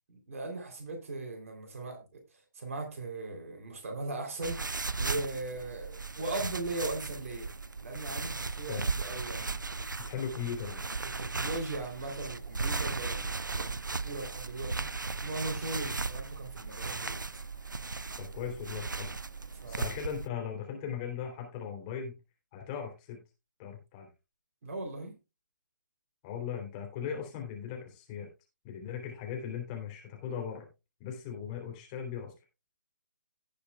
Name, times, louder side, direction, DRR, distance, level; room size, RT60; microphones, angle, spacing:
voice 1, 0.1-4.6 5.0-7.5 7.8-9.9 11.2-14.9 15.2-17.2 19.6-19.9 24.6-25.1, right 2 dB, 45° right, 3 dB, 3.4 m, -39 dB
sound 1, 4.4-20.3, right 4 dB, 75° right, 0.6 m, -36 dB
voice 2, 10.0-10.8 18.2-19.1 19.7-22.1 22.5-23.2 23.6-24.1 26.2-28.3 28.6-30.7 31.0-32.3, left 8 dB, 25° left, 2 dB, 3.3 m, -38 dB
17.5 x 6.7 x 2.4 m, 0.27 s
figure-of-eight pair, 140°, 10 cm